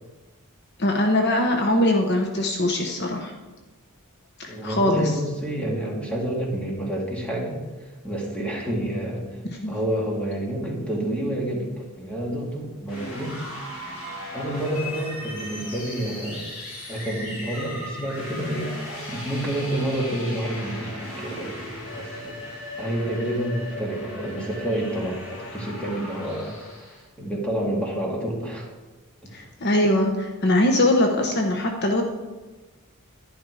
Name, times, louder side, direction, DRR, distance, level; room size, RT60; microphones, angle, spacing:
voice 1, 0.8-3.3 4.4-5.2 9.5-9.7 29.3-32.0, left 1 dB, 50° left, 2 dB, 1.0 m, -22 dB
voice 2, 4.5-9.3 9.7-13.4 14.3-16.5 16.9-18.8 19.1-22.4 22.8-26.6 26.8-28.7 29.2-29.3, right 1 dB, 5° left, -2 dB, 2.4 m, -29 dB
sound 1, 12.8-27.0, left 1 dB, 75° left, 4.5 m, -37 dB
11.0 x 11.0 x 4.8 m, 1.2 s
head